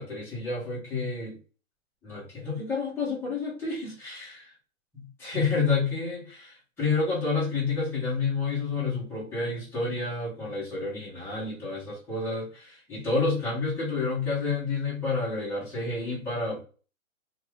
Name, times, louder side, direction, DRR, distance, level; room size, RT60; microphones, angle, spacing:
voice 1, 0.0-1.4 2.0-4.5 4.9-16.6, left 4 dB, 5° left, -8 dB, 1.0 m, -29 dB
2.7 x 2.4 x 3.2 m, 0.37 s
hypercardioid pair, 150°, 43 cm